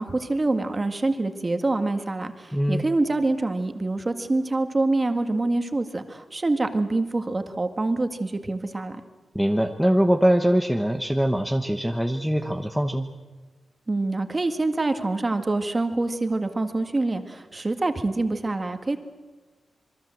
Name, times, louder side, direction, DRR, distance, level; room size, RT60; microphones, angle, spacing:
voice 1, 0.0-9.0 13.9-19.0, right 2 dB, 25° right, 7 dB, 1.9 m, -25 dB
voice 2, 2.5-2.8 9.3-13.1, equal, 5° right, 4 dB, 1.1 m, -22 dB
26.5 x 22.0 x 7.8 m, 1.3 s
wide cardioid pair, 115°, 0 cm